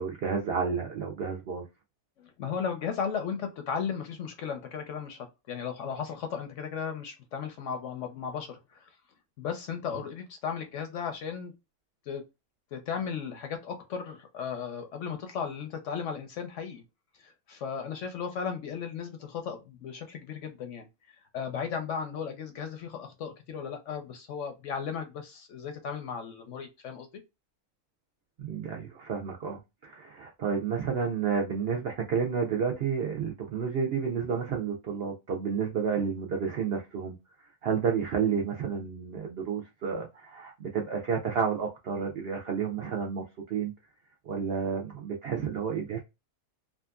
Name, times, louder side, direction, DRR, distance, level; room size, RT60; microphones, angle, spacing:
voice 1, 0.0-1.6 28.4-37.2 37.6-43.7 44.3-46.0, right 6 dB, 70° right, 0.5 m, -31 dB
voice 2, 2.2-8.9 9.4-11.5 12.1-12.2 12.7-16.8 17.2-20.9 21.3-27.1, left 6 dB, 65° left, 0.8 m, -35 dB
2.8 x 2.4 x 2.3 m
omnidirectional pair, 1.6 m